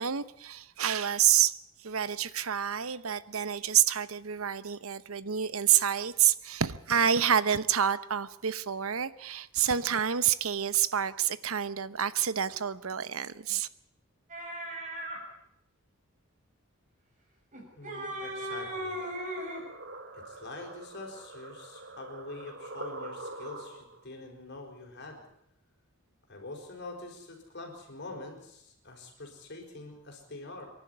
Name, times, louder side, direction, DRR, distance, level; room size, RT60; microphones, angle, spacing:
voice 1, 0.0-13.7, right 9 dB, 75° right, 0.9 m, -28 dB
sound 1, 14.3-15.2 17.5-19.7, right 1 dB, 35° right, 6.2 m, -37 dB
voice 2, 17.8-19.0 20.1-25.2 26.3-30.7, left 2 dB, 55° left, 5.3 m, -45 dB
sound 2, 19.0-24.0, right 2 dB, 55° right, 2.6 m, -44 dB
26.0 x 11.5 x 9.6 m
head